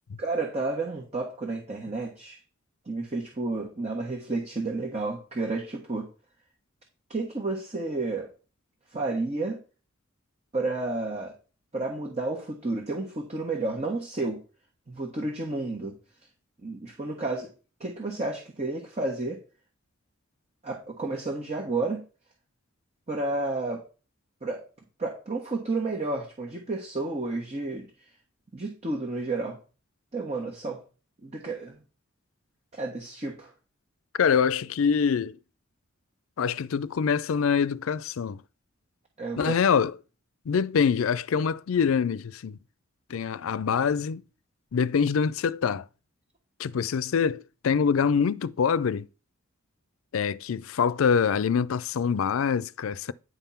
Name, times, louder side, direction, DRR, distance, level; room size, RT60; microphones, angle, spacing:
voice 1, 0.2-2.4 2.9-6.1 7.1-8.3 8.9-9.6 10.5-11.3 11.7-14.4 14.9-15.9 16.6-17.5 17.8-19.4 20.6-22.0 23.1-23.8 24.4-24.6 25.0-27.9 28.5-29.6 30.1-30.8 31.2-31.8 32.7-33.5 39.2-39.5, right 2 dB, 35° right, 1.4 m, -31 dB
voice 2, 34.2-35.4 36.4-38.4 39.4-39.9 40.5-42.6 43.1-44.2 44.7-45.9 46.6-49.1 50.1-53.1, left 6 dB, 75° left, 0.4 m, -25 dB
9.7 x 3.6 x 5.7 m
head